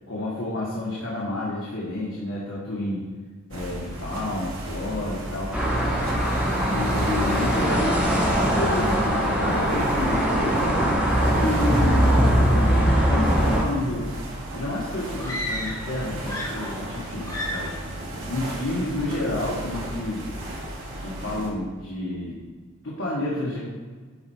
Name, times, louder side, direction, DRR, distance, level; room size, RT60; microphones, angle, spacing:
voice 1, 0.1-3.0 3.5-5.6 6.7-8.0 8.3-10.6 11.1-14.1 14.5-17.8 18.1-20.2 21.0-22.4 22.8-23.6, left 1 dB, 70° left, -6 dB, 1.6 m, -30 dB
sound 1, 3.5-21.5, right 1 dB, 75° right, 2.1 m, -35 dB
sound 2, 5.5-13.6, equal, 5° right, 1.4 m, -21 dB
sound 3, 15.2-15.9 16.2-17.0 17.2-17.8, left 1 dB, 15° left, 2.0 m, -32 dB
12.0 x 4.5 x 4.6 m, 1.5 s
head